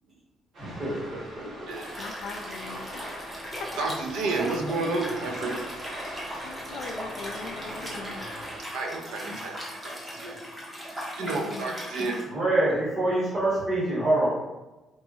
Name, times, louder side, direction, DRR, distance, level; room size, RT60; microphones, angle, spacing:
sound 1, 0.5-8.6, right 1 dB, 45° right, 0.8 m, -41 dB
voice 1, 0.6-1.7 12.2-14.3, right 2 dB, 30° right, -7 dB, 1.1 m, -26 dB
voice 2, 1.4-1.9 3.8-5.7 8.7-10.4 11.2-12.2, right 3 dB, 85° right, 1 dB, 0.4 m, -31 dB
Liquid, 1.7-12.2, equal, 10° right, 0.6 m, -39 dB
voice 3, 2.0-3.0 3.6-3.7 6.4-8.2 11.2-12.3, left 4 dB, 70° left, 4 dB, 0.3 m, -41 dB
2.9 x 2.3 x 2.7 m, 1.1 s
cardioid pair, 175°, 0 cm